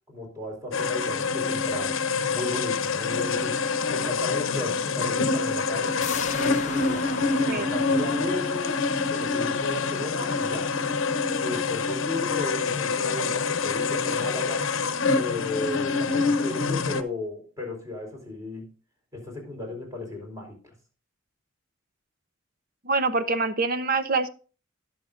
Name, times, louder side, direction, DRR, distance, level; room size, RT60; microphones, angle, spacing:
voice 1, 0.1-2.0 2.3-3.6 3.9-6.0 6.3-7.1 7.4-8.8 9.1-10.7 11.4-14.7 15.1-18.7 19.1-20.6, left 2 dB, 15° right, 0 dB, 4.1 m, -35 dB
sound 1, 0.7-17.0, left 4 dB, 85° left, 0.9 m, -26 dB
sound 2, 6.0-11.5 11.8-11.9, left 6 dB, 35° left, 0.8 m, -39 dB
voice 2, 22.8-24.3, right 3 dB, 45° right, 10 dB, 0.9 m, -25 dB
20.0 x 6.9 x 2.6 m, 0.36 s
head